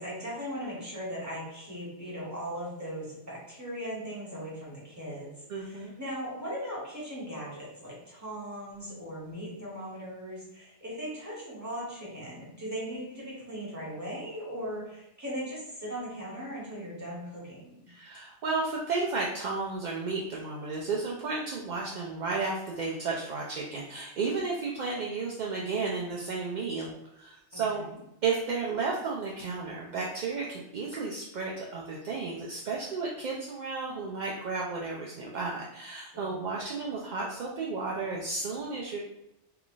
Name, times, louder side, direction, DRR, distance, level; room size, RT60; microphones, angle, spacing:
voice 1, 0.0-5.3 5.6-17.8 27.5-28.0 36.1-36.5, equal, 15° right, -6 dB, 1.2 m, -38 dB
voice 2, 5.5-5.9 17.9-27.9 28.2-39.0, right 4 dB, 60° right, -3 dB, 0.5 m, -33 dB
3.3 x 2.4 x 3.7 m, 0.85 s
omnidirectional pair, 1.2 m